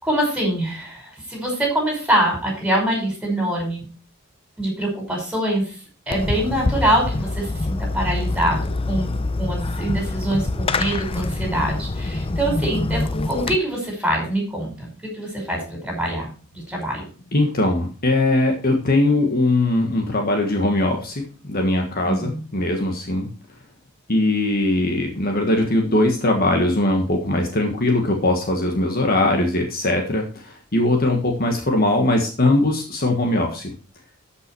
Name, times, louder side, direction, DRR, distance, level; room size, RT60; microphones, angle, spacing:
voice 1, 0.0-3.8 4.6-5.8 6.1-17.0 22.0-22.4, right 1 dB, 5° right, -1 dB, 5.4 m, -24 dB
Fireworks, 6.1-13.6, left 2 dB, 25° left, 0.6 m, -25 dB
voice 2, 17.3-23.3 24.1-33.7, left 2 dB, 45° left, 3 dB, 1.6 m, -20 dB
13.0 x 5.8 x 4.6 m, 0.36 s
head